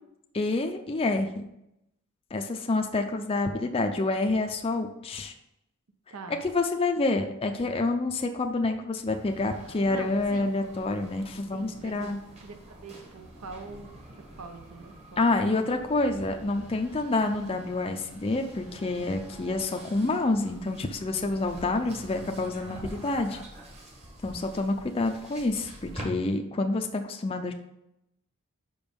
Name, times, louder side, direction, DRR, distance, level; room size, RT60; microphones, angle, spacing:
voice 1, 0.3-1.4 2.3-5.3 6.3-12.2 15.2-23.4 24.2-27.5, left 2 dB, 25° left, 4 dB, 0.5 m, -28 dB
voice 2, 6.1-6.4 9.9-10.6 11.5-12.1 12.4-12.5 12.8-13.9 14.3-15.4, right 4 dB, 75° right, 7 dB, 0.7 m, -43 dB
sound 1, 9.0-26.1, equal, 30° right, 1.4 m, -46 dB
5.3 x 5.1 x 5.2 m, 0.83 s
head